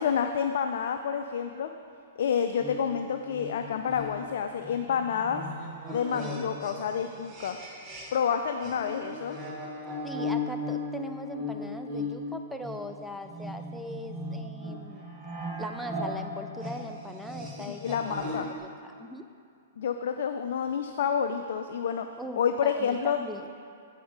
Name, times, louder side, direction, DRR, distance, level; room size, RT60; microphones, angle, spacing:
voice 1, 0.0-1.7 2.2-5.4 5.9-7.6 8.1-9.4 17.6-18.5 19.8-22.1 22.3-23.2, left 7 dB, 65° left, 6 dB, 0.4 m, -29 dB
sound 1, 2.6-8.3 8.6-18.6, left 2 dB, 25° right, 1.2 m, -37 dB
voice 2, 8.6-9.2 10.0-15.1 15.6-19.2 22.2-23.5, equal, ahead, 5 dB, 0.4 m, -40 dB
8.0 x 4.9 x 5.4 m, 2.4 s
hypercardioid pair, 125°, 0 cm